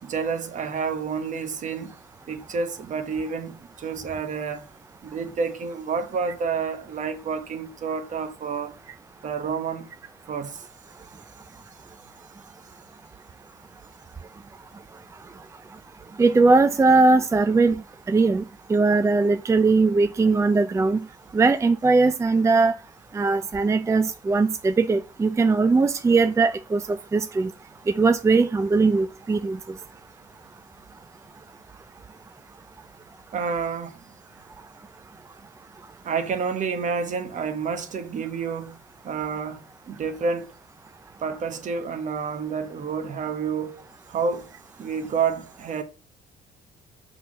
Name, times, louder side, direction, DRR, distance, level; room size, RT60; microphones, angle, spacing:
voice 1, 0.0-2.0 2.3-4.7 5.0-8.8 9.2-9.9 10.3-10.6 33.3-34.0 36.0-38.8 39.0-40.5 41.2-43.8 44.1-44.5 44.8-45.8, right 5 dB, 45° right, 1.3 m, -29 dB
voice 2, 16.2-17.7 18.1-18.4 18.7-21.0 21.3-22.7 23.1-27.5 28.0-29.6, right 3 dB, 15° right, 0.4 m, -20 dB
6.8 x 4.0 x 6.4 m
cardioid pair, 110°, 17 cm